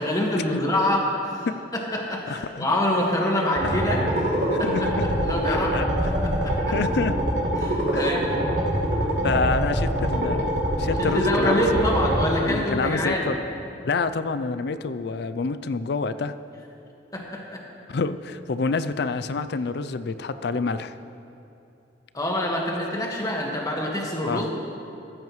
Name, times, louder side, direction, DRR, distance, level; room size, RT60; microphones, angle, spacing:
voice 1, 0.0-1.5 1.7-4.3 4.6-6.7 7.6-8.3 11.0-13.3 17.1-17.6 22.1-24.6, left 1 dB, 20° left, -1 dB, 1.6 m, -26 dB
voice 2, 2.3-2.7 3.6-3.8 4.5-5.1 5.5-5.9 6.7-7.2 7.9-8.0 9.2-10.5 10.8-11.8 12.4-13.4 13.8-16.3 17.9-20.9 24.2-24.4, left 4 dB, 65° left, 12 dB, 0.4 m, -27 dB
sound 1, 3.6-12.2, right 1 dB, 85° right, 2.7 m, -24 dB
15.0 x 14.0 x 3.2 m, 2.8 s
head